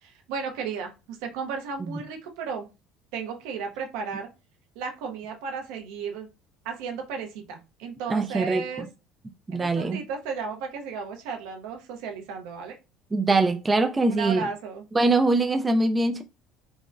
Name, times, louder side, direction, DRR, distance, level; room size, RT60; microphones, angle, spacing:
voice 1, 0.0-2.7 3.1-4.3 4.8-6.3 6.6-8.9 9.5-12.8 14.1-14.9, right 6 dB, 80° right, 0.7 m, -34 dB
voice 2, 8.1-8.9 9.5-10.0 13.1-14.5 14.9-16.2, right 2 dB, 15° right, 0.3 m, -23 dB
3.6 x 2.0 x 2.5 m
cardioid pair, 125°, 0 cm